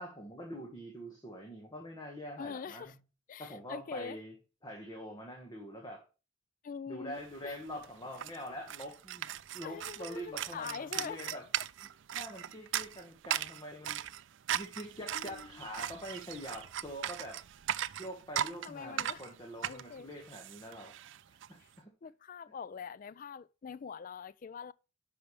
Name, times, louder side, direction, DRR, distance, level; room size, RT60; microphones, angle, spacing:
voice 1, 0.0-2.9 3.4-4.3 4.6-6.0 6.9-9.3 9.5-11.4 12.1-14.0 14.5-17.4 18.0-20.9 21.5-21.9, equal, 20° left, 1.4 m, -44 dB
voice 2, 2.4-2.9 3.3-4.2 6.6-7.2 7.4-7.6 9.6-11.4 15.1-15.6 18.6-19.3 19.7-20.1 21.6-21.7 22.0-24.7, left 6 dB, 40° left, 0.3 m, -44 dB
sound 1, 7.3-7.4 7.6-21.5, right 11 dB, 60° right, 0.4 m, -38 dB
10.5 x 5.8 x 3.2 m
head